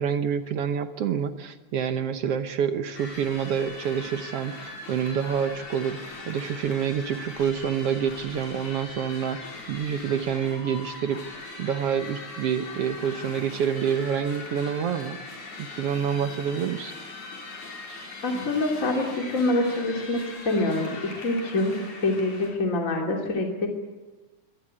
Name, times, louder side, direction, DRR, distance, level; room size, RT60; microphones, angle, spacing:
voice 1, 0.0-6.0 6.3-11.2 11.6-15.2 15.6-16.9, right 8 dB, 65° right, 9 dB, 1.7 m, -27 dB
sound 1, 2.9-22.5, left 3 dB, 80° left, 6.3 m, -40 dB
voice 2, 18.2-20.9 21.2-23.7, left 2 dB, 25° left, 1 dB, 2.9 m, -25 dB
24.5 x 18.5 x 8.7 m, 1.2 s
omnidirectional pair, 3.4 m